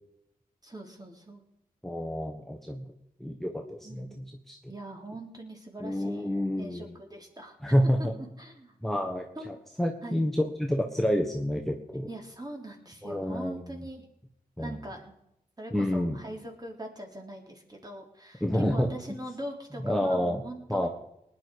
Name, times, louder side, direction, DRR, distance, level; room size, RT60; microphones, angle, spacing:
voice 1, 0.6-1.5 3.8-4.3 4.7-7.6 7.8-8.8 9.4-9.6 10.0-10.3 12.1-14.1 14.6-15.2 15.6-20.9, right 1 dB, 25° right, 1 dB, 3.5 m, -42 dB
voice 2, 1.8-2.8 3.2-4.6 5.8-6.9 7.6-8.1 8.8-12.1 13.0-13.6 14.6-14.8 15.7-16.2 18.4-18.9 19.8-20.4 20.7-20.9, equal, ahead, 3 dB, 1.5 m, -28 dB
19.0 x 10.0 x 4.8 m, 0.82 s
cardioid pair, 45°, 15 cm